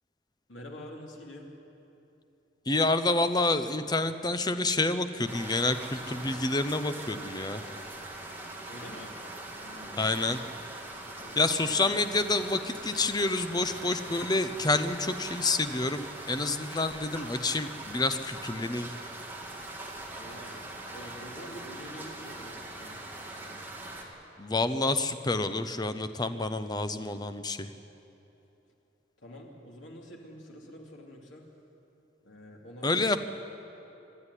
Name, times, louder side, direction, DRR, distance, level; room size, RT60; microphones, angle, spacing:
voice 1, 0.5-1.5 8.7-9.2 9.5-10.1 11.2-11.9 20.1-20.6 20.9-23.0 23.3-23.7 29.2-31.4 32.2-33.2, equal, 85° left, -1 dB, 3.2 m, -47 dB
voice 2, 2.7-7.6 10.0-10.4 11.4-18.9 24.4-27.7 32.8-33.2, left 2 dB, 20° left, 10 dB, 0.8 m, -28 dB
sound 1, 5.3-24.0, right 2 dB, 10° right, 2.3 m, -42 dB
25.5 x 12.0 x 10.0 m, 2.9 s
head